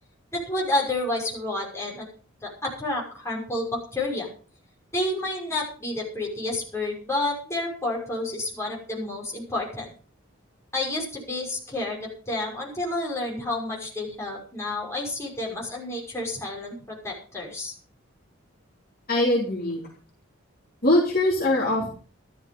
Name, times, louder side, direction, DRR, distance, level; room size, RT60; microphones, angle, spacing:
voice 1, 0.3-2.0 2.4-4.3 4.9-9.9 10.7-17.7, left 2 dB, 15° left, -3 dB, 6.1 m, -30 dB
voice 2, 19.1-19.9 20.8-21.9, left 1 dB, 45° left, -2 dB, 3.4 m, -22 dB
13.0 x 12.5 x 5.5 m, 0.41 s
head